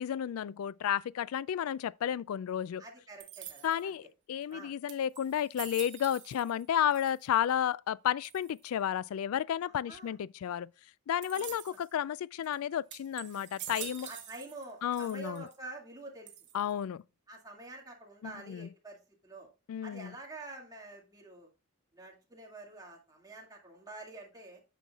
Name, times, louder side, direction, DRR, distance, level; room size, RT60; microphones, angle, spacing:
voice 1, 0.0-2.8 3.6-10.7 11.1-14.1 14.8-15.5 16.5-17.0 18.2-18.7 19.7-20.1, left 9 dB, 75° left, 0.3 m, -32 dB
voice 2, 2.8-4.1 4.5-4.7 9.9-10.2 11.4-11.6 13.8-16.3 17.3-19.5 19.8-21.5 21.9-24.6, right 2 dB, 15° right, 2.1 m, -48 dB
sound 1, 3.2-3.9 4.5-4.6 4.9-6.6 6.9-7.5 8.2-8.7 11.2-11.9 12.4-12.6 12.9-14.7 14.9-15.6 16.3-16.8, right 11 dB, 55° right, 1.2 m, -46 dB
9.2 x 6.4 x 2.3 m
head